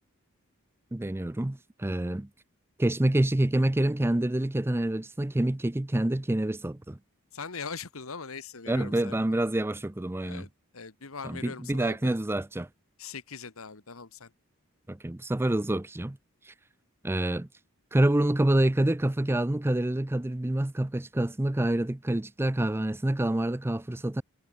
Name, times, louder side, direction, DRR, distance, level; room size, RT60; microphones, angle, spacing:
voice 1, 0.9-2.3 2.8-7.0 8.7-10.5 11.2-12.7 14.9-16.2 16.5-16.6 17.0-17.5 17.9-24.2, right 1 dB, 10° right, 0.5 m, -27 dB
voice 2, 7.3-9.4 10.2-10.5 10.7-12.1 13.0-14.3, left 5 dB, 70° left, 1.6 m, -41 dB
head